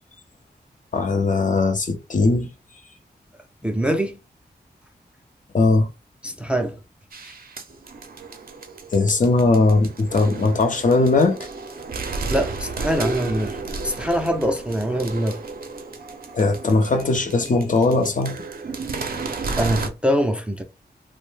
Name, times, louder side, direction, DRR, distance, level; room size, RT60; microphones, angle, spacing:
voice 1, 0.9-2.5 5.5-5.9 8.9-11.4 16.3-18.3, left 3 dB, 50° left, 0.6 m, -19 dB
voice 2, 3.6-4.2 6.2-6.8 12.3-13.6 13.8-15.4 19.6-20.6, equal, 5° right, 0.4 m, -23 dB
sound 1, 7.1-19.9, right 3 dB, 60° right, 0.5 m, -33 dB
2.6 x 2.0 x 3.2 m
wide cardioid pair, 105°, 17 cm